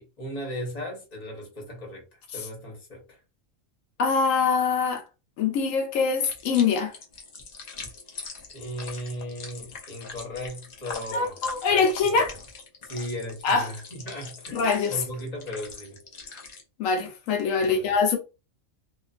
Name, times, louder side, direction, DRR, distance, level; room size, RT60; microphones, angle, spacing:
voice 1, 0.0-2.0 2.3-3.2 8.5-11.3 11.7-12.2 12.8-16.0 17.6-17.9, equal, 35° left, 1.0 m, -37 dB
voice 2, 4.0-5.0 5.4-6.9 11.1-12.4 13.4-13.7 14.5-14.9 16.8-18.2, left 5 dB, 85° left, 1.0 m, -23 dB
sound 1, 6.2-16.6, left 4 dB, 55° left, 0.5 m, -42 dB
2.5 x 2.4 x 2.4 m
omnidirectional pair, 1.3 m